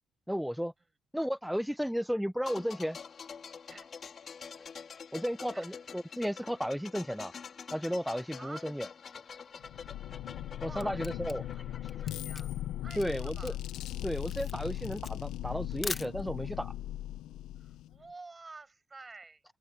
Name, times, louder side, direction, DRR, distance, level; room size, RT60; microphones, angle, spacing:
voice 1, 0.3-0.7 1.1-3.0 5.1-5.6 5.9-7.3 7.7-8.9 10.6-11.4 13.0-13.5 14.0-16.7, equal, ahead, 0.6 m, -33 dB
sound 1, 2.4-13.1 13.3-13.5, left 6 dB, 50° left, 3.9 m, -47 dB
voice 2, 8.4-8.7 10.6-11.0 11.3-12.5 12.8-13.6 17.5-19.4, right 3 dB, 25° right, 6.9 m, -50 dB
sound 2, 9.6-18.1, left 13 dB, 90° left, 0.9 m, -39 dB
Camera, 10.4-16.6, left 4 dB, 30° left, 1.1 m, -43 dB
open air
cardioid pair, 90°, 0 cm